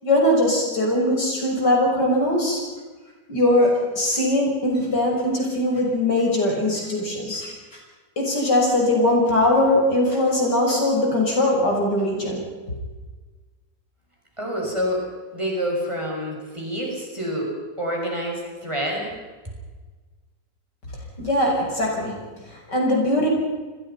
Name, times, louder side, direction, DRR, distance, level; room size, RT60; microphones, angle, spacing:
voice 1, 0.0-2.6 3.3-7.5 8.2-12.5 21.2-22.2 22.5-23.3, left 1 dB, 70° left, 0 dB, 6.8 m, -21 dB
voice 2, 14.4-15.0 15.3-17.5 17.8-19.1, equal, 15° right, -2 dB, 6.8 m, -27 dB
29.5 x 21.5 x 5.7 m, 1.4 s
omnidirectional pair, 1.9 m